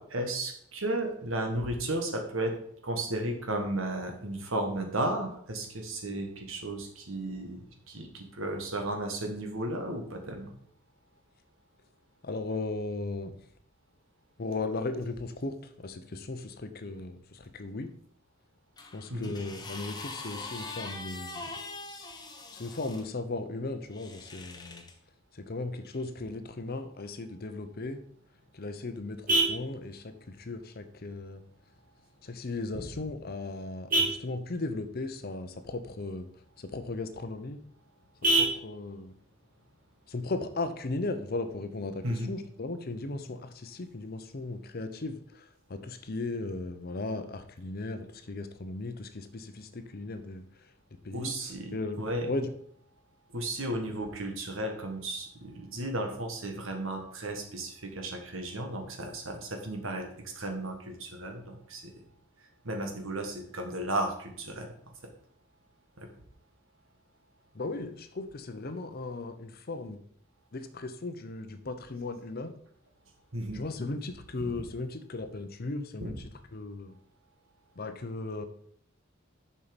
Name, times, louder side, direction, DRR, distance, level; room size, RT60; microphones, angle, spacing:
voice 1, 0.0-2.5 2.8-10.5 19.1-19.3 42.0-42.3 51.1-52.2 53.3-60.1 60.3-61.9 62.6-64.7 65.0-65.1 66.0-66.1 73.3-73.6 76.0-76.1, right 1 dB, 70° right, 4 dB, 1.5 m, -34 dB
voice 2, 12.2-13.4 14.4-17.9 18.9-21.5 22.5-24.9 25.3-28.0 28.5-31.4 32.2-37.6 38.3-39.2 40.1-50.7 51.0-52.5 67.5-70.0 70.5-72.5 73.5-77.0 77.8-78.5, left 2 dB, 45° left, 9 dB, 0.7 m, -37 dB
sound 1, 18.8-23.0 23.9-24.9 25.8-26.0, left 3 dB, 20° left, 0.9 m, -42 dB
Vehicle horn car horn honking, 28.0-41.0, right 2 dB, 40° right, 2.2 m, -35 dB
7.0 x 5.5 x 5.2 m, 0.65 s
head